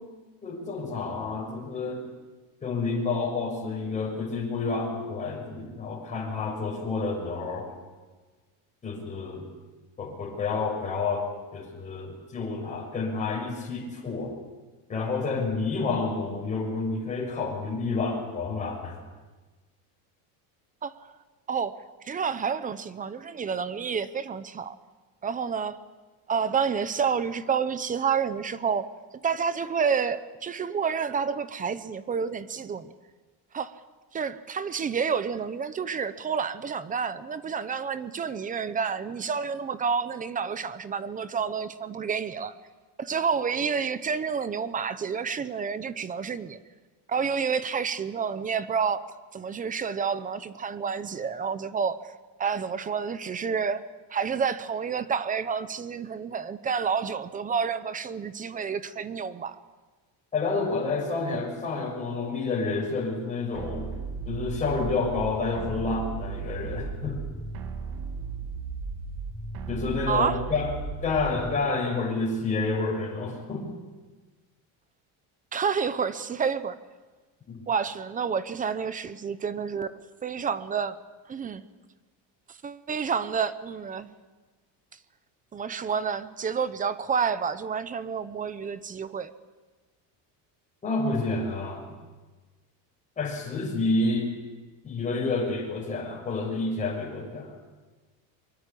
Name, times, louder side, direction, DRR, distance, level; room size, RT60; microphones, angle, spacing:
voice 1, 0.4-2.1 2.6-7.7 8.8-9.5 10.0-11.3 11.5-14.3 14.9-19.0 60.3-63.9 64.2-67.2 69.7-70.7 71.0-73.7 77.5-77.6 90.8-91.9 93.2-94.3 94.8-97.5, left 3 dB, 15° left, -1 dB, 6.4 m, -29 dB
voice 2, 21.5-24.7 25.2-25.8 26.3-28.9 29.2-32.9 33.5-33.7 34.1-42.5 43.0-46.6 47.1-49.0 49.3-52.1 52.4-53.8 54.1-59.6 70.1-70.4 75.5-76.8 77.7-81.0 81.3-81.7 82.5-84.1 85.5-89.3, right 6 dB, 20° right, 13 dB, 0.8 m, -29 dB
sound 1, 63.5-71.5, right 4 dB, 55° right, 2.7 m, -35 dB
23.5 x 23.5 x 8.6 m, 1.3 s
cardioid pair, 170°, 42 cm